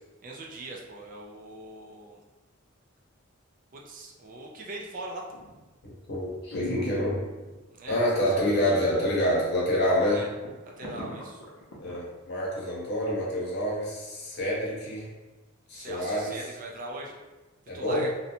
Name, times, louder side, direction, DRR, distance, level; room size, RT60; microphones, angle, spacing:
voice 1, 0.2-2.2 3.7-5.2 7.7-9.1 10.1-10.3 10.8-11.4 15.7-17.2 17.7-18.1, right 2 dB, 40° right, -1 dB, 0.4 m, -41 dB
sound 1, 5.3-5.7 6.1-6.2 6.5-7.5 8.2-8.9 9.2-9.3 9.8-9.9 10.1-12.0 12.4-12.5, left 1 dB, 80° left, 0.6 m, -38 dB
voice 2, 5.8-7.2 7.9-10.3 11.8-15.1 15.7-16.4 17.7-18.1, equal, 55° left, -5 dB, 0.9 m, -27 dB
2.6 x 2.1 x 2.8 m, 1.2 s
head